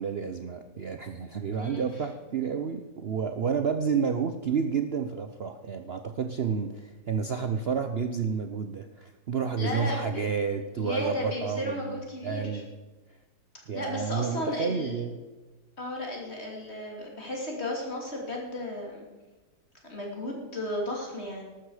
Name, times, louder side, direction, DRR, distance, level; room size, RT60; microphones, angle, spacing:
voice 1, 0.0-12.7 13.7-15.2, right 6 dB, 75° right, 7 dB, 0.5 m, -30 dB
voice 2, 1.5-2.1 9.6-10.3 10.8-12.6 13.7-15.0 15.8-19.1 19.8-21.4, left 1 dB, 35° left, -1 dB, 3.2 m, -34 dB
13.5 x 12.5 x 4.9 m, 1.2 s
omnidirectional pair, 2.0 m